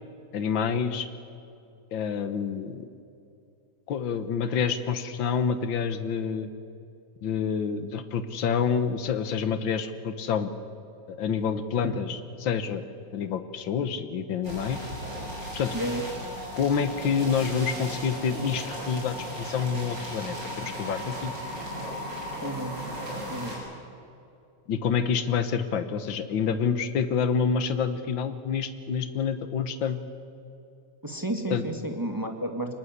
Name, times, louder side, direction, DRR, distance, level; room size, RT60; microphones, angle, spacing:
voice 1, 0.3-1.1 1.9-2.8 3.9-6.5 7.2-10.5 11.1-12.8 13.1-14.8 15.5-15.7 16.6-21.3 24.7-30.0 31.5-31.6, left 6 dB, 55° left, 10 dB, 1.4 m, -28 dB
sound 1, 14.4-23.5, equal, 35° right, 8.4 m, -36 dB
voice 2, 15.7-16.0 22.4-22.8 23.2-23.5 31.0-32.7, right 1 dB, 10° right, 4 dB, 1.2 m, -31 dB
24.0 x 20.5 x 8.2 m, 2.7 s
omnidirectional pair, 3.3 m